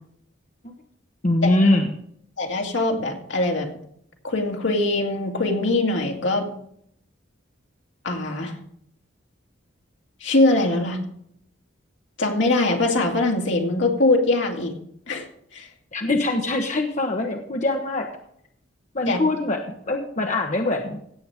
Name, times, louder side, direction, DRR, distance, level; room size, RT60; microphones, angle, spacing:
voice 1, 1.2-1.9 15.9-18.1 18.9-21.0, left 2 dB, 40° left, 3 dB, 1.0 m, -23 dB
voice 2, 2.4-3.7 4.2-6.5 8.0-8.6 10.2-11.0 12.2-14.7 15.1-15.3 15.5-15.7 19.1-19.2, left 2 dB, 70° left, 2 dB, 2.3 m, -22 dB
16.5 x 7.8 x 3.5 m, 0.69 s
head